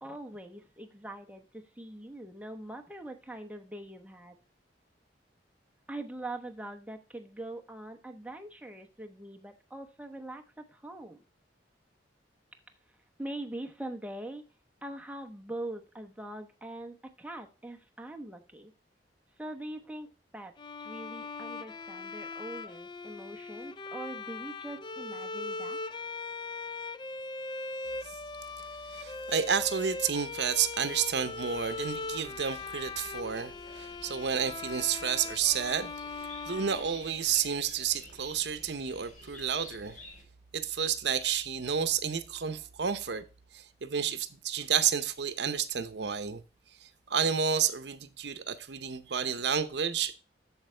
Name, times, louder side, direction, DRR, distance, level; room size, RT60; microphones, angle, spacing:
voice 1, 0.0-4.4 5.9-11.2 13.2-14.4 14.8-18.7 19.4-20.5 20.8-25.8, right 1 dB, 10° right, 1.0 m, -42 dB
Bowed string instrument, 20.6-37.6, left 3 dB, 25° left, 0.5 m, -40 dB
voice 2, 28.9-40.0 40.5-43.2 43.5-46.4 46.8-50.1, right 7 dB, 70° right, 0.8 m, -31 dB
sound 1, 31.5-40.2, left 2 dB, 50° left, 3.7 m, -52 dB
8.0 x 7.2 x 3.3 m
head